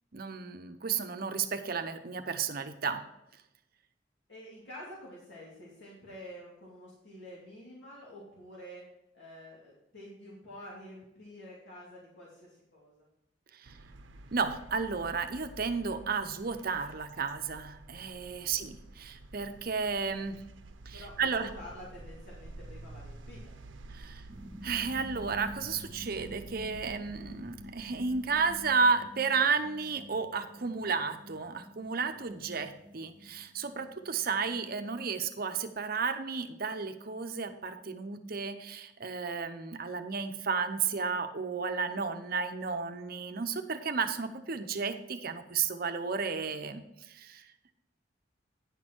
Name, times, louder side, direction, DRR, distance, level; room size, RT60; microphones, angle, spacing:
voice 1, 0.1-3.0 13.6-13.7 14.3-20.4 20.9-21.5 23.9-24.2 24.6-47.4, right 5 dB, 50° right, 8 dB, 0.7 m, -33 dB
voice 2, 4.3-8.8 9.1-12.9 18.4-18.6 20.9-23.5, left 1 dB, 65° left, -6 dB, 2.6 m, -48 dB
sound 1, 13.6-28.9, right 2 dB, 85° right, 0.7 m, -50 dB
sound 2, 24.3-35.9, left 1 dB, 10° right, 2.0 m, -50 dB
9.6 x 6.4 x 4.5 m, 0.86 s
head